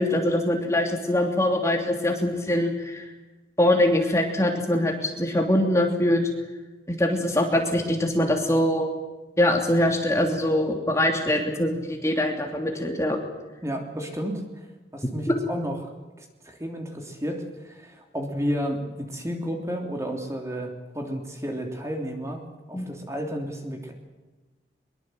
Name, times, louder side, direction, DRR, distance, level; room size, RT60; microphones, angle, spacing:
voice 1, 0.0-3.0 3.6-6.2 6.9-8.9 9.4-13.2 22.7-22.9, left 1 dB, 15° left, 2 dB, 3.0 m, -23 dB
voice 2, 13.6-14.7 14.9-15.9 16.2-22.4 22.7-23.9, equal, 15° right, 2 dB, 3.1 m, -32 dB
23.0 x 23.0 x 8.0 m, 1.2 s
head